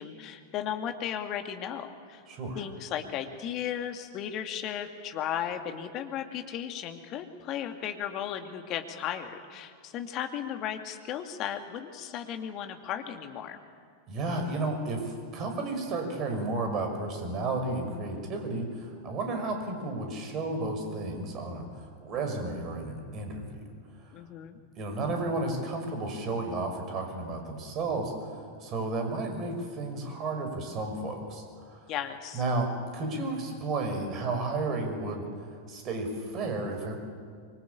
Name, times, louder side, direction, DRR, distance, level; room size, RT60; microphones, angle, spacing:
voice 1, 0.0-2.2 2.5-13.6 24.1-24.6 31.9-32.4, left 9 dB, 35° left, 6 dB, 2.4 m, -35 dB
voice 2, 2.3-2.7 14.1-23.7 24.0-24.1 24.8-31.9 32.3-35.2 35.7-36.9, right 2 dB, 35° right, 4 dB, 6.2 m, -32 dB
25.5 x 24.0 x 8.7 m, 2.1 s
figure-of-eight pair, 90°, 0 cm